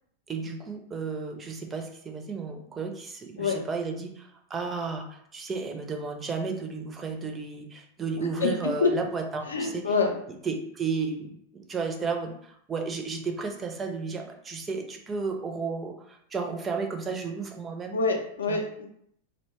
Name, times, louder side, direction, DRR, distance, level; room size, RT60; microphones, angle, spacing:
voice 1, 0.3-9.9 10.4-17.9 18.5-18.6, right 4 dB, 20° right, 4 dB, 0.4 m, -33 dB
voice 2, 9.5-10.1 17.9-18.9, left 4 dB, 70° left, 2 dB, 0.5 m, -26 dB
2.6 x 2.1 x 2.9 m, 0.69 s
figure-of-eight pair, 90°, 0 cm